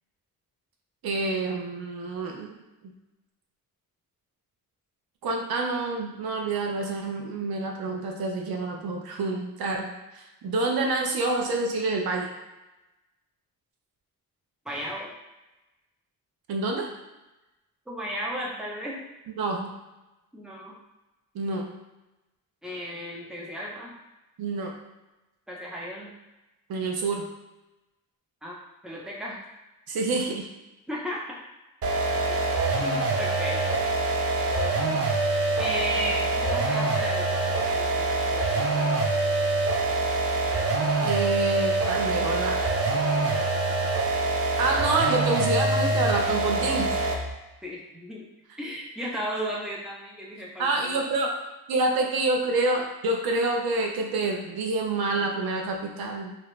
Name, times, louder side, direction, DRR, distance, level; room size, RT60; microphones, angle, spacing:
voice 1, 1.0-2.6 2.8-2.9 5.2-12.3 16.5-16.9 19.4-19.7 21.3-21.7 24.4-24.7 26.7-27.3 29.9-30.5 41.0-42.6 44.6-47.0 50.6-51.4 51.7-56.4, right 3 dB, 90° right, 1 dB, 0.6 m, -27 dB
voice 2, 14.6-15.1 17.9-19.0 20.3-20.7 22.6-23.9 25.5-26.1 28.4-28.6 28.8-29.4 30.9-31.4 32.3-32.4 32.8-33.6 35.6-39.1 47.6-48.3 48.6-51.0, equal, ahead, -4 dB, 0.8 m, -35 dB
sound 1, 31.8-47.3, right 2 dB, 40° right, 0.5 m, -25 dB
2.8 x 2.5 x 3.2 m, 1.0 s
cardioid pair, 90°, 36 cm